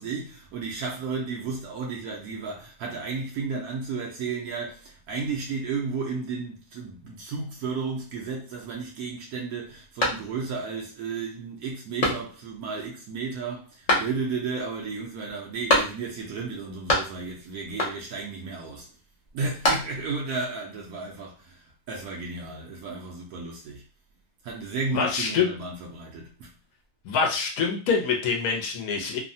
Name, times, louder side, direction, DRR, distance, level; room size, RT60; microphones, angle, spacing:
voice 1, 0.0-18.9 19.3-23.8 24.4-26.5, right 4 dB, 80° right, 1.1 m, -33 dB
sound 1, 10.0-10.7 11.1-11.2 12.0-12.6 13.9-14.5 15.7-16.3 16.5-17.4 17.8-18.3 19.3-20.2, left 1 dB, 40° left, 0.6 m, -27 dB
voice 2, 24.9-25.5 27.0-29.2, left 5 dB, 80° left, 1.2 m, -25 dB
3.1 x 2.1 x 2.6 m
omnidirectional pair, 1.5 m